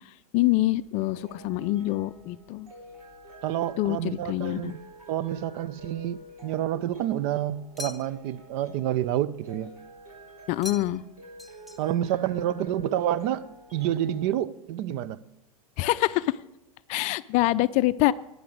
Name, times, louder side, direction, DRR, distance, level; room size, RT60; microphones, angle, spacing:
voice 1, 0.3-2.7 3.8-4.7 10.5-11.0 15.8-16.4 16.9-18.1, left 17 dB, 40° left, 0.4 m, -25 dB
sound 1, 0.8-14.3, equal, 75° right, 4.2 m, -49 dB
voice 2, 3.4-4.8 5.1-9.7 11.8-15.2, right 11 dB, 45° right, 0.6 m, -28 dB
sound 2, 7.8-8.4 10.6-11.1 11.4-12.1, left 3 dB, ahead, 0.9 m, -42 dB
12.0 x 9.4 x 6.5 m
hypercardioid pair, 100°, 19 cm